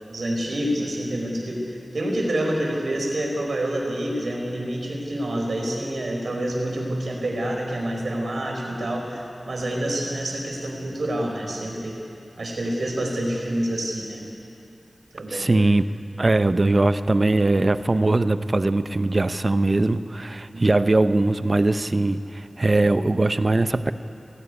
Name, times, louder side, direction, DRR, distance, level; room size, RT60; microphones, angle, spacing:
voice 1, 0.1-12.0 12.4-14.2 15.1-15.5 20.5-20.7, right 1 dB, 85° right, 0 dB, 4.6 m, -27 dB
voice 2, 15.3-15.8 16.2-23.9, right 2 dB, 40° right, 11 dB, 0.7 m, -21 dB
18.0 x 16.5 x 9.9 m, 2.5 s
wide cardioid pair, 85°, 0 cm